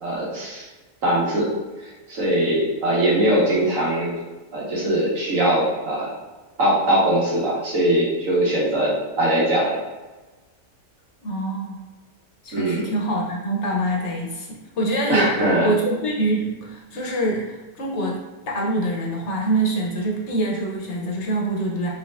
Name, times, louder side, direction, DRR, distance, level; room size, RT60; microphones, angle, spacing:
voice 1, 0.0-0.6 1.0-1.5 1.8-4.1 4.5-6.1 6.6-9.8 12.5-12.9 15.1-15.7, right 1 dB, 80° right, -5 dB, 1.8 m, -21 dB
voice 2, 11.2-11.8 12.4-15.3 15.6-21.9, right 1 dB, 60° left, -1 dB, 1.2 m, -25 dB
5.1 x 3.6 x 2.5 m, 1.2 s
omnidirectional pair, 1.4 m